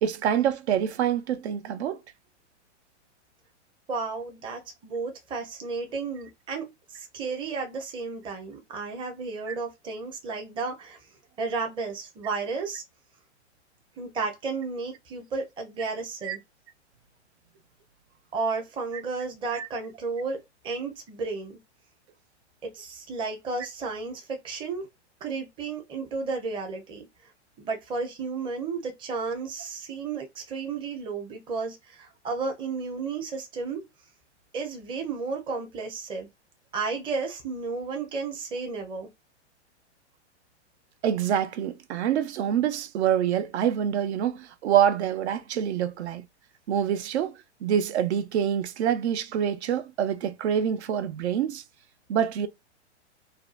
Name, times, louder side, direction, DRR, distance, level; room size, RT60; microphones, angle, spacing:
voice 1, 0.0-2.0 9.5-9.6 16.2-16.4 19.5-19.7 41.0-46.2 46.7-47.3 47.6-51.6 52.1-52.5, right 9 dB, 70° right, 0.6 m, -26 dB
voice 2, 3.9-11.0 11.4-12.8 14.0-16.4 18.3-21.6 22.6-24.9 25.2-27.1 27.6-33.8 34.5-36.3 36.7-39.1, right 4 dB, 15° right, 0.6 m, -33 dB
2.6 x 2.2 x 2.4 m
hypercardioid pair, 130°, 35 cm